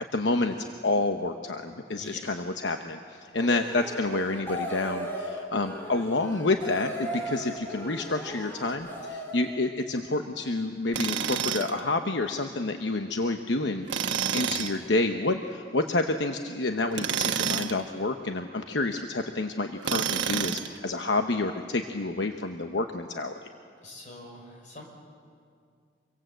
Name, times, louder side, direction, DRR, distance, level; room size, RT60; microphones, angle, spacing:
voice 1, 0.1-13.9 14.3-23.4, left 2 dB, 70° left, 6 dB, 1.0 m, -29 dB
sound 1, 3.4-9.5, equal, 10° left, 3.0 m, -37 dB
Tools, 10.9-11.8 13.9-14.8 16.9-17.8 19.8-20.8, right 7 dB, 75° right, 1.3 m, -28 dB
voice 2, 23.8-24.9, left 1 dB, 40° left, 1 dB, 5.1 m, -45 dB
26.0 x 23.0 x 7.9 m, 2.2 s
head